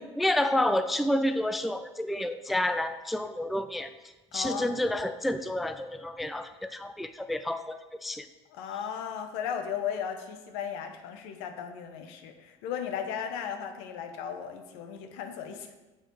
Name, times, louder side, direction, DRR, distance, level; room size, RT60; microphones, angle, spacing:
voice 1, 0.0-3.9 4.3-8.3, left 1 dB, ahead, 9 dB, 0.3 m, -29 dB
voice 2, 4.3-4.8 8.5-15.7, left 8 dB, 65° left, 6 dB, 0.8 m, -36 dB
7.0 x 4.4 x 4.5 m, 1.1 s
hypercardioid pair, 65°, 15 cm